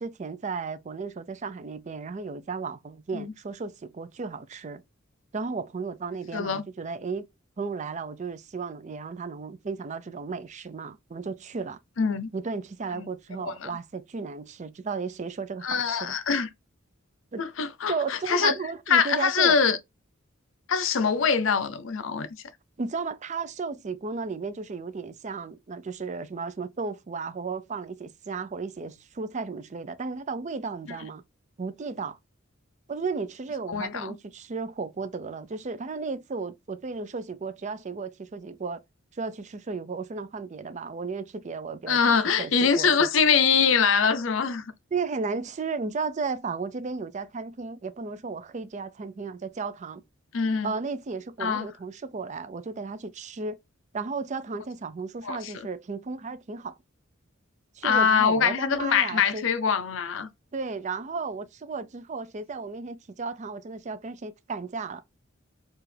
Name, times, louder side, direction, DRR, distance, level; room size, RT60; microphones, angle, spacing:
voice 1, 0.0-4.8 5.3-7.3 7.6-11.8 12.3-16.2 17.3-17.4 17.9-19.6 22.8-31.2 31.6-32.2 32.9-38.8 39.2-42.0 42.4-43.1 44.9-50.0 50.6-53.6 53.9-56.8 57.8-59.4 60.5-65.0, right 4 dB, 35° right, 0.4 m, -34 dB
voice 2, 6.3-6.6 12.0-12.3 13.0-13.1 13.4-13.7 15.6-16.5 17.4-18.5 18.9-19.8 20.7-22.3 33.7-34.2 41.9-44.6 50.3-50.7 51.4-51.7 55.2-55.5 57.8-60.3, left 6 dB, 65° left, 0.6 m, -23 dB
4.8 x 2.4 x 3.2 m
head